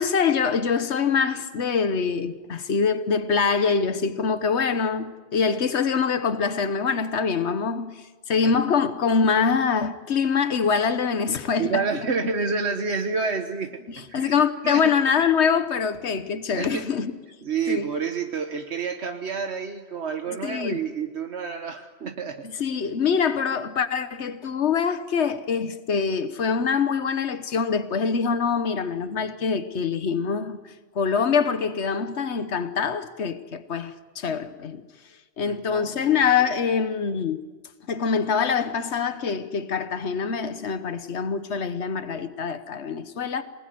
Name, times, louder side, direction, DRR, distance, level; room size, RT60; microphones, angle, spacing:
voice 1, 0.0-11.8 13.9-17.1 17.7-17.9 20.4-20.8 22.4-34.8 35.4-37.4 37.9-43.4, left 6 dB, 85° left, 1.4 m, -24 dB
voice 2, 11.6-14.3 14.6-14.9 16.6-16.8 17.4-22.4 35.5-36.2, right 5 dB, 80° right, 1.6 m, -29 dB
28.0 x 20.5 x 9.4 m
omnidirectional pair, 1.1 m